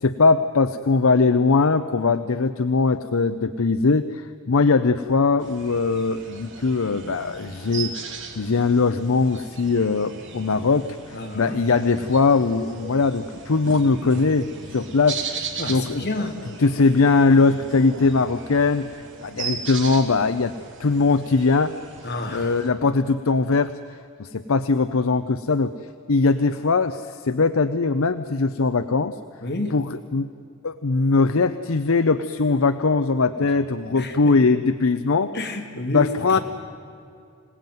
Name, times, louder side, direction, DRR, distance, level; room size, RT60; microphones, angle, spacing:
voice 1, 0.0-7.9 8.4-15.2 15.7-16.0 16.6-18.9 19.2-20.5 20.8-21.7 22.3-23.7 24.2-25.7 26.1-29.2 29.7-30.3 30.6-35.3 35.9-36.4, left 4 dB, 70° left, 11 dB, 0.7 m, -20 dB
sound 1, 5.4-22.7, right 5 dB, 60° right, 2.9 m, -37 dB
voice 2, 11.1-11.6 15.6-16.3 22.0-22.5 29.4-29.7 33.9-34.2 35.3-36.4, left 2 dB, 55° left, 2 dB, 2.7 m, -29 dB
26.0 x 18.0 x 9.3 m, 2.5 s
head